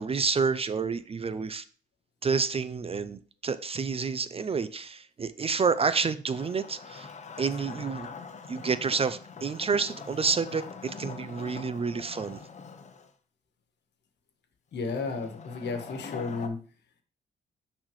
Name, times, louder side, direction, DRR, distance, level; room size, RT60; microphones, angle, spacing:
voice 1, 0.0-1.6 2.2-7.1 7.4-8.1 8.5-12.4, right 5 dB, 30° right, 14 dB, 0.4 m, -29 dB
Wood, 6.3-13.1 14.7-16.5, left 5 dB, 35° left, 0.8 m, -43 dB
voice 2, 14.7-16.6, left 4 dB, 60° left, 7 dB, 1.4 m, -33 dB
10.0 x 4.1 x 3.1 m, 0.41 s
cardioid pair, 90°, 20 cm